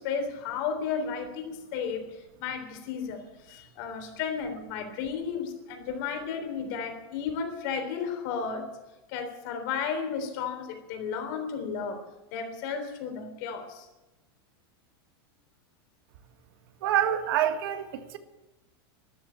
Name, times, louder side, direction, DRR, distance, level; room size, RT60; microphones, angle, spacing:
voice 1, 0.0-8.8 9.1-13.9, left 6 dB, 50° left, 3.6 m, -33 dB
voice 2, 16.8-18.2, right 10 dB, 60° right, 1.7 m, -26 dB
13.5 x 11.5 x 8.9 m
supercardioid pair, 165°, 13 cm